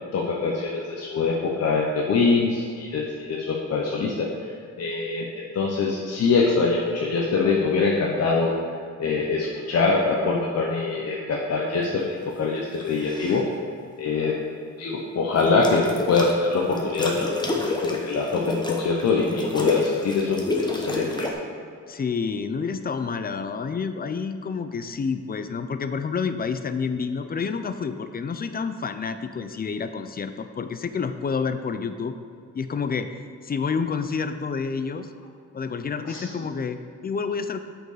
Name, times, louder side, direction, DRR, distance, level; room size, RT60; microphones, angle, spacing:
voice 1, 0.1-4.3 4.8-8.5 9.0-13.5 14.0-14.4 14.8-21.3 36.1-36.2, left 4 dB, 60° left, -2 dB, 0.9 m, -24 dB
sound 1, 12.7-13.4 15.4-16.3 16.7-21.3, left 2 dB, 15° left, 1.0 m, -29 dB
voice 2, 21.9-32.2 32.5-33.1 33.4-35.1 35.5-37.6, left 5 dB, 30° left, 10 dB, 0.5 m, -29 dB
7.7 x 4.7 x 4.9 m, 2.4 s
cardioid pair, 95°, 29 cm